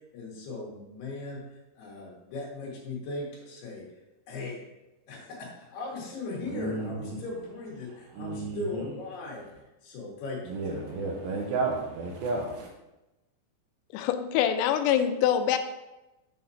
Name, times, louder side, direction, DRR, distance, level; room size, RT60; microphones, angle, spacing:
voice 1, 0.1-1.4 1.8-3.8 4.3-4.6 5.1-9.5 9.8-11.1, left 2 dB, 75° left, 3.7 m, -38 dB
voice 2, 6.5-7.2 8.1-8.8 10.5-12.7, right 3 dB, 75° right, 2.3 m, -32 dB
voice 3, 13.9-15.6, left 9 dB, 90° left, 2.7 m, -24 dB
7.7 x 7.2 x 2.8 m
omnidirectional pair, 4.8 m